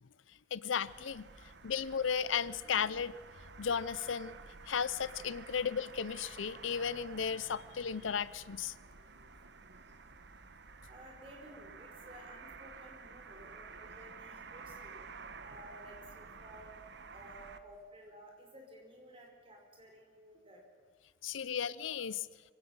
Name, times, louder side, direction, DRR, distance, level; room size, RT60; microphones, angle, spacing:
voice 1, 0.5-1.2 1.6-3.1 3.6-4.4 4.7-8.7 21.2-22.3, left 7 dB, 75° left, 19 dB, 0.6 m, -35 dB
sound 1, 0.9-17.6, right 4 dB, 60° right, 1.3 m, -52 dB
voice 2, 10.9-15.0 15.4-16.7 17.1-20.6, equal, 30° right, 2 dB, 5.2 m, -54 dB
24.5 x 17.0 x 8.0 m, 1.5 s
head